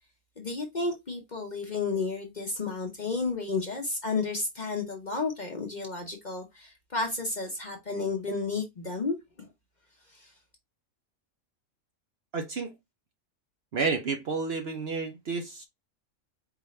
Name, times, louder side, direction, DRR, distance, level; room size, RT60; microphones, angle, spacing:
voice 1, 0.4-9.5 10.1-10.3, left 3 dB, 40° left, 0.8 m, -32 dB
voice 2, 12.3-12.7 13.7-15.6, right 4 dB, 50° right, 0.9 m, -30 dB
4.8 x 2.7 x 3.1 m
omnidirectional pair, 1.5 m